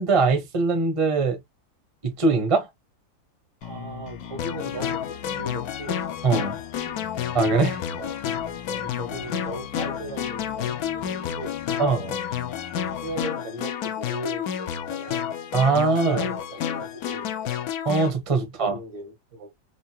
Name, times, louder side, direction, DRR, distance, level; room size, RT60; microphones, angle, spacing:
voice 1, 0.0-1.4 2.0-2.7 6.2-6.6 7.3-7.8 11.8-12.0 15.5-16.2 17.8-18.7, right 4 dB, 25° right, 0.8 m, -22 dB
sound 1, 3.6-13.2, left 11 dB, 85° left, 1.4 m, -41 dB
voice 2, 3.6-5.0 5.3-6.4 7.9-8.2 8.7-12.2 13.0-15.3 16.0-17.3 18.6-19.5, right 1 dB, 70° right, 1.9 m, -37 dB
sound 2, 4.4-18.1, left 9 dB, 65° left, 1.0 m, -30 dB
4.5 x 2.6 x 2.8 m
omnidirectional pair, 2.0 m